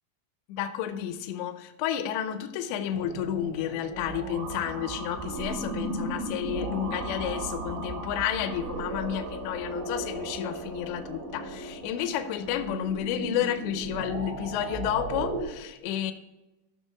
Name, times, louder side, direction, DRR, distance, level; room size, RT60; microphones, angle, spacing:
voice 1, 0.5-16.1, left 10 dB, 80° left, 9 dB, 2.7 m, -31 dB
sound 1, 2.9-15.4, right 2 dB, 85° right, 4.3 m, -36 dB
16.5 x 6.3 x 3.5 m, 1.0 s
omnidirectional pair, 5.6 m